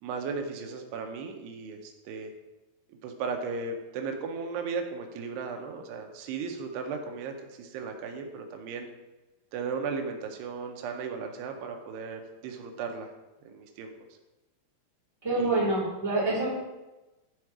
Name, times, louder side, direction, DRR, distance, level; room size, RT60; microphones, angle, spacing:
voice 1, 0.0-2.3 2.9-8.9 9.5-13.1 13.4-13.9 15.4-15.6, right 5 dB, 90° right, 4 dB, 3.0 m, -36 dB
voice 2, 15.2-16.5, right 2 dB, 10° right, -9 dB, 2.8 m, -26 dB
11.5 x 4.4 x 4.7 m, 1.1 s
omnidirectional pair, 4.6 m